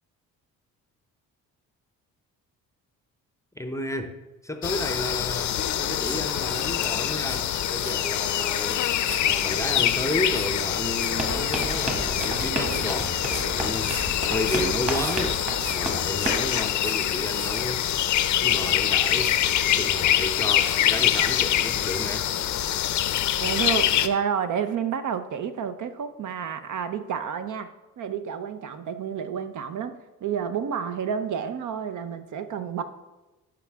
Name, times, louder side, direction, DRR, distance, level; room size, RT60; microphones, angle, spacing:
voice 1, 3.6-4.2 4.4-8.9 9.2-14.0 14.3-15.4 15.7-18.0 18.4-19.4 19.6-22.3, left 1 dB, 10° left, 7 dB, 0.6 m, -32 dB
sound 1, 4.6-24.1, left 11 dB, 55° left, 0.5 m, -25 dB
sound 2, 5.4-6.2 6.5-17.6, right 3 dB, 85° right, 1.8 m, -42 dB
sound 3, 11.1-16.5, right 1 dB, 20° right, 1.8 m, -32 dB
voice 2, 23.4-27.7 28.0-32.8, right 7 dB, 60° right, 10 dB, 0.6 m, -30 dB
11.5 x 5.0 x 3.5 m, 1.1 s
cardioid pair, 100°, 35 cm